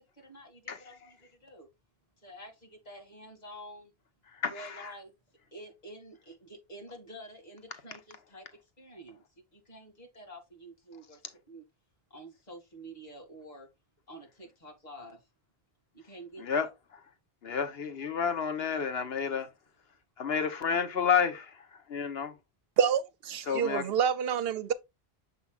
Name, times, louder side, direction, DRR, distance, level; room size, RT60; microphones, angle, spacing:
voice 1, 0.0-1.7 2.2-3.9 4.5-5.1 5.5-8.5 8.8-11.2 11.5-11.6 12.1-13.7 14.1-15.3 15.9-16.7, right 1 dB, 40° left, 2.4 m, -49 dB
voice 2, 4.3-4.9 16.4-16.7 17.4-19.5 20.2-22.3 23.5-23.9, left 6 dB, 75° left, 1.1 m, -30 dB
voice 3, 22.8-24.7, right 8 dB, 75° right, 0.8 m, -27 dB
7.1 x 5.6 x 2.4 m
omnidirectional pair, 1.0 m